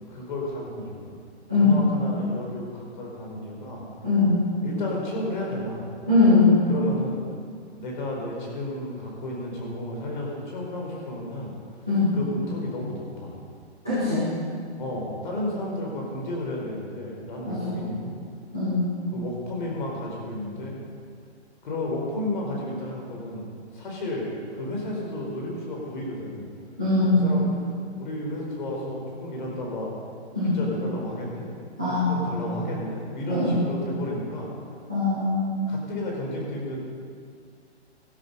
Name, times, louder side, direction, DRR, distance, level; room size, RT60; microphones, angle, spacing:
voice 1, 0.1-1.2 1.6-3.8 4.6-5.9 6.7-7.2 7.7-11.5 12.1-13.3 14.8-18.2 19.1-20.8 21.6-23.5 23.7-24.3 24.5-26.5 27.0-27.5 27.9-29.9 30.5-31.5 31.8-34.5 35.7-36.8, left 1 dB, 45° left, -2 dB, 4.6 m, -32 dB
voice 2, 4.0-4.4 6.1-6.5 11.9-12.1 13.8-14.3 17.4-17.7 18.5-18.9 26.8-27.4 30.4-30.6 31.8-32.3 33.3-33.6 34.9-35.6, left 3 dB, 5° right, -15 dB, 0.4 m, -21 dB
18.5 x 12.5 x 5.5 m, 2.2 s
hypercardioid pair, 170°, 34 cm